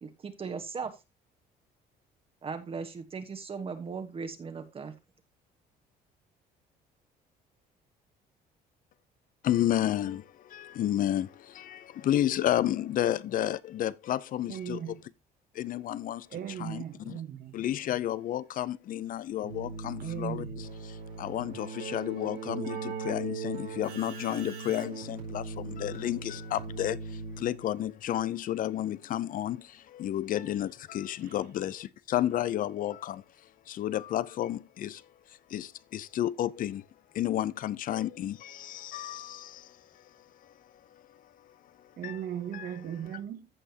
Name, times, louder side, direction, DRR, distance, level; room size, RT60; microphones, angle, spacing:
voice 1, 0.0-1.0 2.4-4.9, right 5 dB, 35° right, 1.2 m, -38 dB
voice 2, 9.4-15.0 15.5-16.3 16.6-17.1 17.5-33.2 33.7-36.9 37.1-40.1 40.4-40.5 40.9-42.2 42.5-42.7, left 12 dB, 55° left, 0.5 m, -32 dB
voice 3, 14.5-15.0 16.3-17.6 20.0-20.5 31.2-31.4 42.0-43.5, right 10 dB, 60° right, 1.2 m, -38 dB
Keyboard (musical), 19.4-27.8, right 4 dB, 90° right, 4.9 m, -39 dB
14.5 x 5.5 x 2.8 m
cardioid pair, 110°, 17 cm